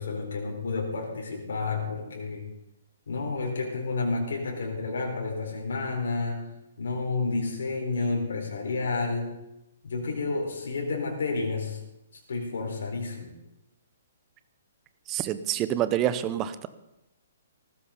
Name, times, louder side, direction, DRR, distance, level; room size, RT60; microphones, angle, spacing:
voice 1, 0.0-2.5 3.1-6.5 6.8-9.3 9.8-11.8 12.3-13.3, left 3 dB, 65° left, 0 dB, 4.4 m, -30 dB
voice 2, 15.1-16.7, right 11 dB, 25° right, 13 dB, 1.0 m, -27 dB
19.0 x 14.0 x 4.0 m, 0.92 s
figure-of-eight pair, 125°, 0 cm